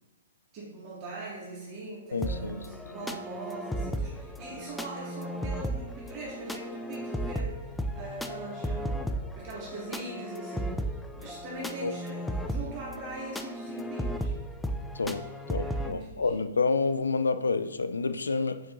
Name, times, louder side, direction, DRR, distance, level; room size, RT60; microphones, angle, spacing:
voice 1, 0.5-7.6 7.9-9.1 9.4-14.3 15.6-16.3, right 2 dB, 40° right, -5 dB, 1.9 m, -41 dB
voice 2, 2.1-2.6 11.8-11.9 14.9-18.6, left 4 dB, 80° left, 11 dB, 0.3 m, -29 dB
sound 1, 2.2-15.9, equal, 5° left, 0.4 m, -35 dB
7.5 x 5.1 x 2.6 m, 1.1 s
figure-of-eight pair, 120°, 0 cm